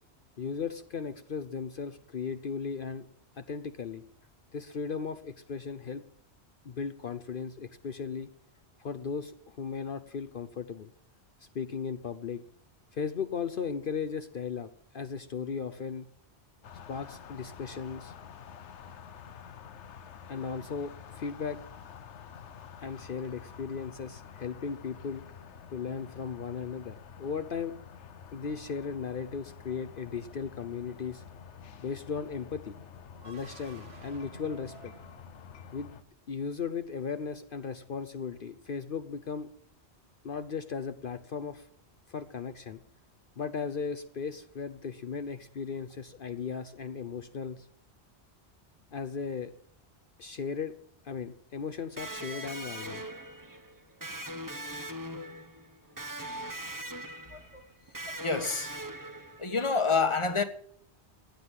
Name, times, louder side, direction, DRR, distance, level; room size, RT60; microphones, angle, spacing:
voice 1, 0.4-3.0 3.4-4.0 4.5-6.0 6.6-8.3 8.8-10.9 11.4-12.4 12.9-16.1 16.9-18.1 20.3-21.6 22.8-25.2 25.7-27.7 28.3-31.2 31.8-32.8 33.2-34.9 35.7-35.9 36.3-39.5 40.2-41.7 42.1-42.8 43.4-47.7 48.9-49.5 50.2-50.7 51.0-53.0, left 6 dB, 55° left, 0.9 m, -36 dB
sound 1, 16.6-36.0, left 7 dB, 90° left, 1.1 m, -49 dB
sound 2, 33.1-36.1, right 3 dB, 65° right, 1.8 m, -52 dB
Electric guitar, 52.0-59.7, right 1 dB, 20° right, 1.0 m, -41 dB
voice 2, 57.3-57.6 58.1-58.7 59.4-60.4, left 4 dB, 25° left, 1.4 m, -28 dB
15.5 x 9.9 x 7.5 m
omnidirectional pair, 1.1 m